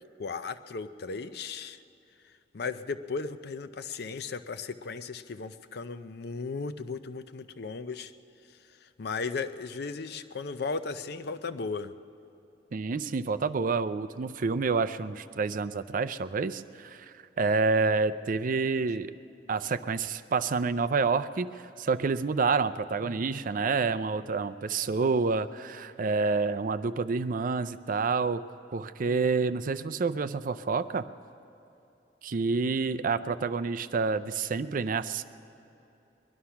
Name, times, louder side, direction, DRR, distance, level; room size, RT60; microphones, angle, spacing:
voice 1, 0.2-1.8 2.5-8.1 8.8-11.9, left 4 dB, 65° left, 11 dB, 0.6 m, -36 dB
voice 2, 12.7-19.1 19.5-21.5 21.8-28.4 28.7-31.1 32.2-35.2, right 4 dB, 50° right, 11 dB, 0.4 m, -28 dB
21.5 x 11.5 x 5.8 m, 2.9 s
head